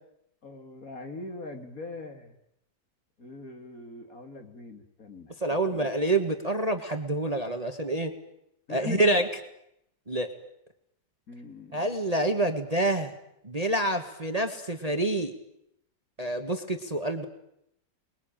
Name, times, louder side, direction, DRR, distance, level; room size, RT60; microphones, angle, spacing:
voice 1, 0.4-2.3 3.2-5.3 5.7-5.8 8.7-9.2 11.3-11.9, left 3 dB, 50° left, 5 dB, 3.0 m, -40 dB
voice 2, 5.4-8.1 8.7-9.3 10.1-10.3 11.7-13.1 13.4-15.3 16.2-17.3, right 2 dB, 20° right, 7 dB, 1.6 m, -27 dB
28.0 x 21.5 x 8.9 m, 0.78 s
omnidirectional pair, 2.0 m